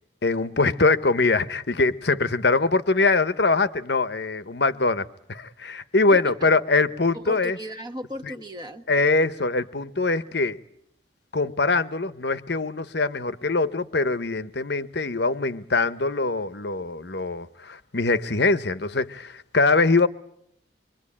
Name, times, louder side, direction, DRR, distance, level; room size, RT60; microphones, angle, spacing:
voice 1, 0.2-7.6 8.3-8.4 8.9-10.6 11.3-20.1, left 3 dB, 65° left, 1.0 m, -23 dB
voice 2, 6.1-6.5 7.1-8.9, equal, 20° right, 1.3 m, -36 dB
26.5 x 23.5 x 8.7 m
head